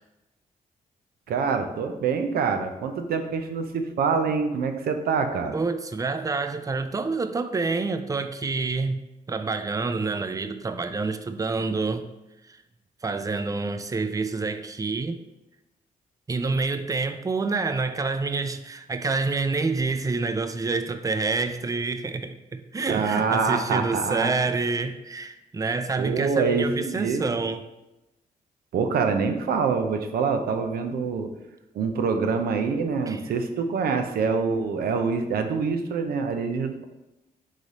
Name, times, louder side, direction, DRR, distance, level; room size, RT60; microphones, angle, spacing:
voice 1, 1.3-5.6 22.9-24.4 26.0-27.2 28.7-31.3 31.7-36.8, right 5 dB, 80° right, 6 dB, 0.5 m, -25 dB
voice 2, 5.5-9.0 9.3-12.0 12.5-12.6 13.0-15.2 16.3-27.6 33.1-33.3, right 3 dB, 20° right, 9 dB, 0.4 m, -27 dB
3.9 x 3.2 x 4.0 m, 0.97 s
cardioid pair, 75°, 15 cm